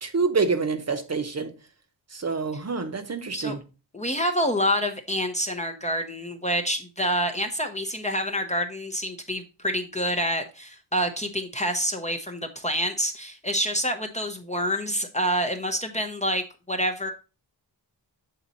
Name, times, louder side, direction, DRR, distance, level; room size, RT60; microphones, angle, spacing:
voice 1, 0.0-1.5 2.2-3.6, right 4 dB, 40° right, 0.8 m, -26 dB
voice 2, 3.9-17.1, equal, 15° left, 0.6 m, -27 dB
7.5 x 4.0 x 4.0 m
wide cardioid pair, 180°, 42 cm